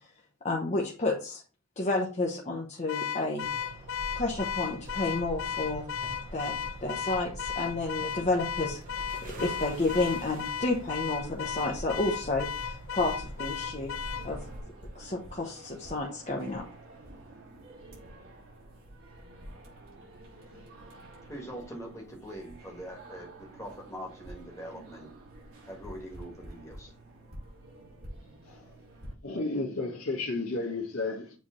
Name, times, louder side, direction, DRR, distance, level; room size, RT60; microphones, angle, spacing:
voice 1, 0.4-1.4 1.8-3.5 4.1-5.8 6.3-8.8 9.3-13.9 14.2-14.4 15.0-16.6, left 2 dB, 30° left, 0.9 m, -31 dB
Car / Alarm, 2.9-14.3, left 8 dB, 65° left, 0.4 m, -35 dB
sound 1, 3.4-14.6, right 1 dB, 40° right, 1.2 m, -43 dB
sound 2, 14.0-29.1, right 1 dB, 65° right, 3.5 m, -49 dB
voice 2, 21.3-25.1 25.7-26.9, equal, 15° left, 1.5 m, -43 dB
voice 3, 29.2-31.4, left 3 dB, 80° left, 1.9 m, -32 dB
7.4 x 3.4 x 4.3 m
head